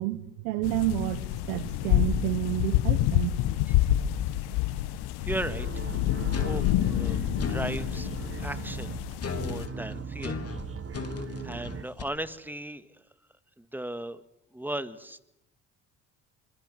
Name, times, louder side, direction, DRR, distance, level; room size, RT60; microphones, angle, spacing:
voice 1, 0.0-3.3, right 16 dB, 85° right, 14 dB, 1.3 m, -30 dB
sound 1, 0.6-9.7, left 14 dB, 75° left, 1.3 m, -28 dB
voice 2, 5.2-5.9 6.3-9.0 9.3-10.4 11.2-13.1 13.6-14.2 14.5-15.2, right 1 dB, 5° right, 12 dB, 1.9 m, -37 dB
sound 2, 5.3-11.9, right 6 dB, 35° right, 1.3 m, -39 dB
sound 3, 6.3-7.9 9.2-12.0, left 4 dB, 35° left, 3.8 m, -36 dB
26.0 x 23.0 x 8.0 m, 0.84 s
supercardioid pair, 60°, 39 cm